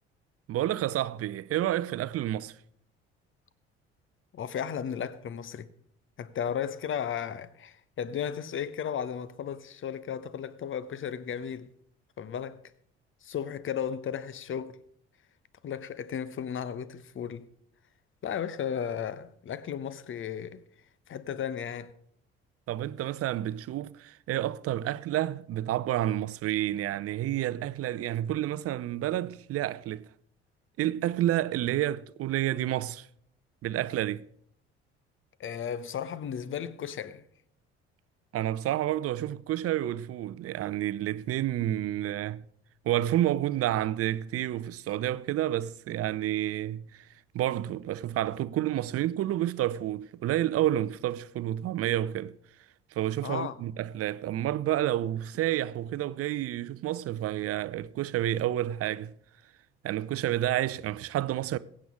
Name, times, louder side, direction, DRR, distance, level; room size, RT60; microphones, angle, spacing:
voice 1, 0.5-2.6 22.7-30.1 30.8-33.1 33.6-34.3 38.3-42.4 42.8-52.3 52.9-59.1 59.8-61.6, right 13 dB, 45° right, 0.7 m, -29 dB
voice 2, 4.3-5.7 6.2-11.7 12.2-12.6 13.2-14.8 15.6-17.5 18.2-20.6 21.1-21.9 35.4-37.2 53.2-53.6, left 8 dB, 35° left, 1.0 m, -34 dB
22.5 x 8.6 x 3.7 m
figure-of-eight pair, 50°, 33 cm